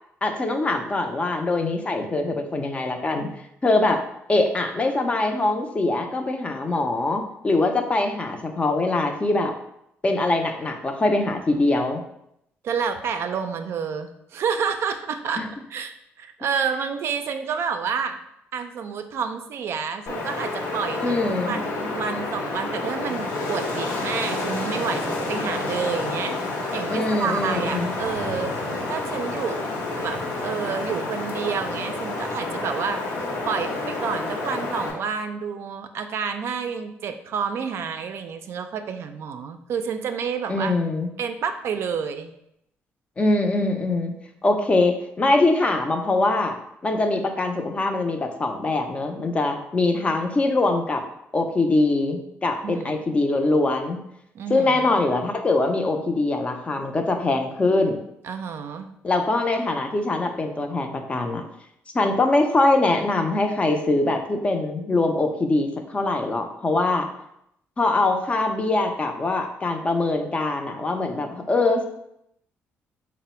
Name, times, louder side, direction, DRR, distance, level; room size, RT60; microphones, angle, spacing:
voice 1, 0.2-3.3 3.6-4.0 4.3-9.5 10.0-12.0 15.4-15.5 21.0-21.5 26.9-27.9 40.5-41.1 43.2-44.1 44.4-46.5 46.8-51.0 51.3-54.0 54.5-58.0 59.0-61.4 61.9-67.1 67.8-71.9, left 2 dB, 25° left, 5 dB, 0.5 m, -23 dB
voice 2, 12.6-15.4 15.7-18.2 18.5-21.2 21.4-26.3 26.7-28.6 28.9-29.6 30.0-33.0 33.5-40.7 41.2-42.3 52.6-53.0 54.3-55.0 58.2-58.9, right 6 dB, 60° right, 7 dB, 0.3 m, -29 dB
Wind, 20.1-34.9, left 2 dB, 85° left, 0.9 m, -29 dB
3.8 x 2.0 x 4.3 m, 0.78 s
cardioid pair, 100°, 5 cm